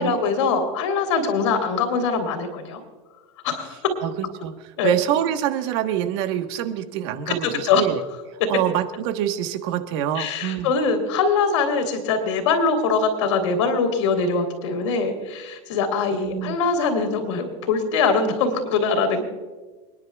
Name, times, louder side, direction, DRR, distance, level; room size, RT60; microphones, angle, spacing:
voice 1, 0.0-2.8 3.4-3.8 4.8-4.9 7.3-7.4 7.6-7.8 10.1-19.2, left 4 dB, 80° left, 5 dB, 3.4 m, -22 dB
voice 2, 4.0-4.5 4.8-8.0 8.3-10.7 16.1-16.6, right 11 dB, 65° right, 7 dB, 1.3 m, -26 dB
28.0 x 10.5 x 2.4 m, 1.3 s
supercardioid pair, 140°, 15 cm